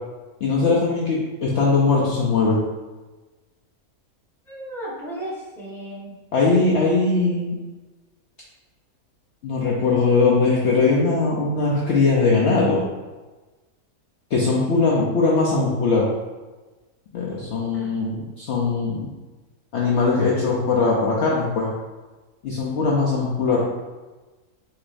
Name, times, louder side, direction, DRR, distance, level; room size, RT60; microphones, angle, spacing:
voice 1, 0.4-2.6 6.3-7.6 9.4-12.8 14.3-16.1 17.1-19.1 19.7-21.7 22.4-23.6, left 3 dB, 60° left, -5 dB, 0.8 m, -20 dB
voice 2, 4.5-6.2 17.7-18.2, right 1 dB, ahead, -8 dB, 1.1 m, -35 dB
6.4 x 2.9 x 2.6 m, 1.2 s
omnidirectional pair, 1.6 m